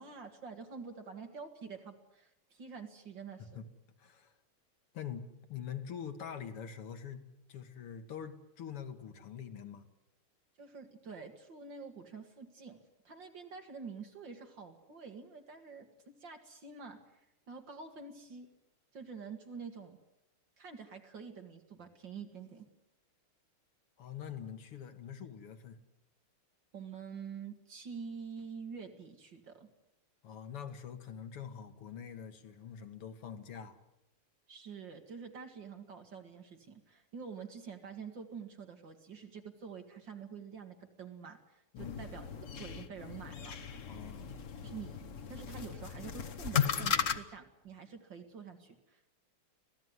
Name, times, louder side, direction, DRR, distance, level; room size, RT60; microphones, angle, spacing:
voice 1, 0.0-3.6 10.6-12.8 13.0-15.9 16.2-18.5 18.9-20.0 20.6-22.7 26.7-29.7 34.5-42.3 42.6-43.6 44.6-45.0 45.3-49.0, right 5 dB, 55° right, 6 dB, 2.6 m, -47 dB
voice 2, 4.0-4.3 4.9-7.2 7.5-9.9 24.0-25.8 30.2-33.8 41.7-42.1 43.9-44.3, left 8 dB, 85° left, 8 dB, 2.7 m, -44 dB
sound 1, 41.8-47.2, left 7 dB, 45° left, 1.2 m, -36 dB
25.5 x 17.5 x 9.7 m, 0.87 s
omnidirectional pair, 2.4 m